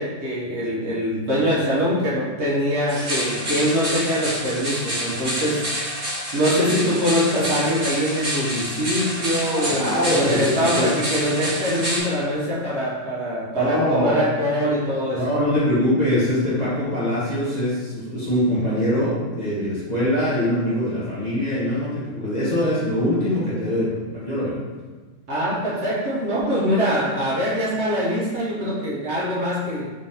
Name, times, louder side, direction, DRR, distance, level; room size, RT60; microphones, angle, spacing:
voice 1, 0.0-5.7 6.3-15.2 25.3-29.9, equal, 60° right, -6 dB, 0.9 m, -23 dB
sound 1, 2.9-12.0, equal, 40° right, 1.4 m, -28 dB
voice 2, 9.5-10.9 13.6-14.2 15.1-24.5, left 1 dB, 35° left, -10 dB, 0.8 m, -23 dB
3.6 x 3.3 x 2.7 m, 1.3 s
omnidirectional pair, 1.5 m